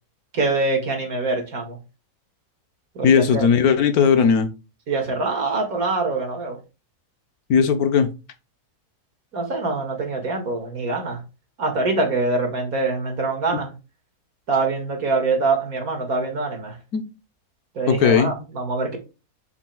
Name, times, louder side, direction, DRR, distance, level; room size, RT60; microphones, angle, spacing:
voice 1, 0.3-1.8 3.0-3.4 4.9-6.6 9.3-11.2 11.6-13.7 14.5-16.8 17.7-19.0, right 3 dB, 70° right, 2.5 m, -24 dB
voice 2, 3.0-4.5 7.5-8.1 16.9-17.0 17.9-18.3, left 6 dB, 75° left, 1.4 m, -17 dB
7.3 x 7.1 x 2.3 m
omnidirectional pair, 1.6 m